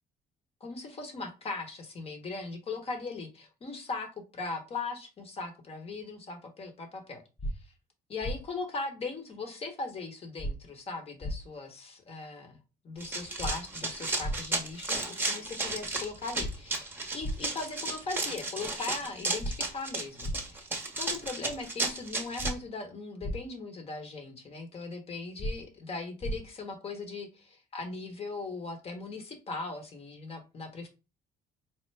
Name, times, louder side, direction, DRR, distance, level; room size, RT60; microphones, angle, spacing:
voice 1, 0.6-7.2 7.6-7.7 8.1-12.6 12.8-16.9 17.1-20.7 21.0-30.9, left 3 dB, 35° left, 5 dB, 1.0 m, -39 dB
sound 1, 7.4-7.5 8.2-8.4 10.4-10.5 11.2-11.3 13.4-13.5 14.2-14.4 16.4-16.5 17.2-17.4 19.4-19.5 20.2-20.4 22.4-22.5 23.2-23.3 25.4-25.5 26.2-26.3, equal, 15° left, 0.4 m, -32 dB
Run, 13.0-22.5, right 2 dB, 10° right, 0.8 m, -33 dB
4.3 x 2.1 x 3.2 m, 0.29 s
cardioid pair, 110°, 17 cm